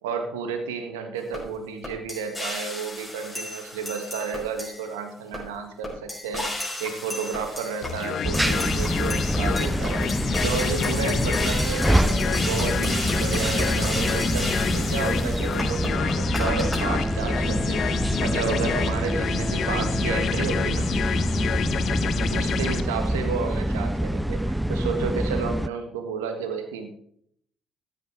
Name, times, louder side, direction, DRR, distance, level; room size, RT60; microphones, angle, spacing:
voice 1, 0.0-6.5 6.8-10.0 10.4-17.8 18.2-20.9 22.3-26.9, right 6 dB, 75° right, 6 dB, 1.6 m, -31 dB
sound 1, 1.3-1.4 1.8-4.9 5.3-5.4 5.8-16.8, left 1 dB, 15° left, 6.1 m, -33 dB
sound 2, 7.8-22.8, left 9 dB, 55° left, 0.6 m, -29 dB
sound 3, 8.2-25.7, right 1 dB, 5° right, 0.4 m, -26 dB
13.5 x 10.0 x 3.5 m, 0.67 s
figure-of-eight pair, 50°, 0 cm